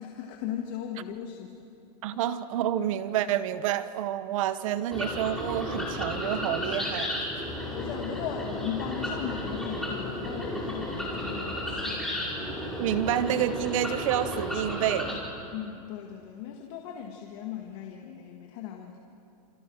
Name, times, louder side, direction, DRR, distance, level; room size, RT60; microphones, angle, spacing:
voice 1, 0.0-1.5 7.7-12.0 15.5-19.0, left 9 dB, 45° left, 2 dB, 1.9 m, -37 dB
voice 2, 2.0-7.3 12.8-15.2, right 11 dB, 55° right, 13 dB, 1.0 m, -28 dB
sound 1, 4.9-15.1, left 1 dB, ahead, 5.1 m, -33 dB
28.0 x 27.0 x 6.5 m, 2.7 s
supercardioid pair, 160°, 21 cm